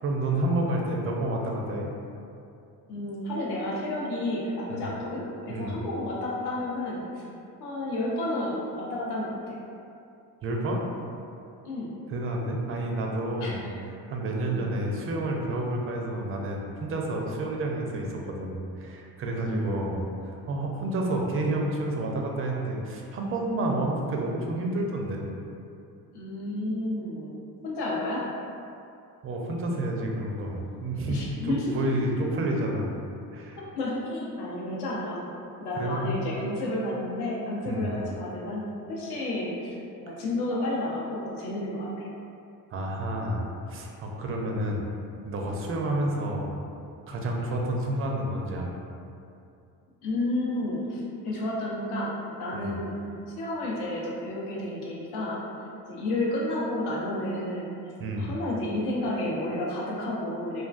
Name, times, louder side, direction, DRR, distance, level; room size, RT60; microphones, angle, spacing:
voice 1, 0.0-1.9 4.7-4.8 5.5-5.8 10.4-10.8 12.1-13.6 14.1-25.3 29.2-33.0 33.3-33.6 35.8-36.2 37.7-37.9 42.7-44.8 45.2-46.6 47.1-48.7 52.5-52.8 58.0-58.3, right 1 dB, 30° right, 0 dB, 0.4 m, -29 dB
voice 2, 2.9-7.2 7.6-9.6 11.6-11.9 13.4-13.5 14.4-14.7 19.5-19.7 26.1-27.4 27.6-28.2 31.1-31.7 33.8-35.3 35.6-42.1 44.4-44.5 50.0-52.1 52.4-53.0 53.4-55.4 55.9-57.8 58.2-60.6, left 1 dB, 55° left, -5 dB, 0.8 m, -31 dB
2.4 x 2.2 x 2.4 m, 2.5 s
hypercardioid pair, 65°, 47 cm